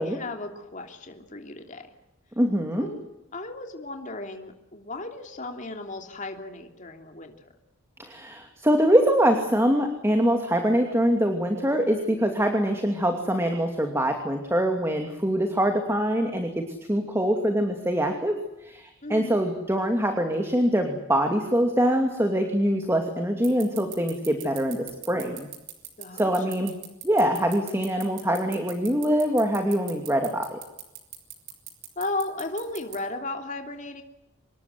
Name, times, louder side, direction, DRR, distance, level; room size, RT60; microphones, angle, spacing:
voice 1, 0.0-1.8 2.8-3.0 3.3-7.3 19.0-19.4 26.0-26.3 32.0-34.0, left 2 dB, 35° left, 4 dB, 2.9 m, -35 dB
voice 2, 2.4-2.9 8.0-16.6 16.9-18.4 18.6-25.5 26.1-26.7 27.0-30.6, equal, 10° right, 4 dB, 2.6 m, -24 dB
sound 1, 23.4-33.0, right 15 dB, 60° right, 5.0 m, -39 dB
26.0 x 21.5 x 7.7 m, 0.92 s
head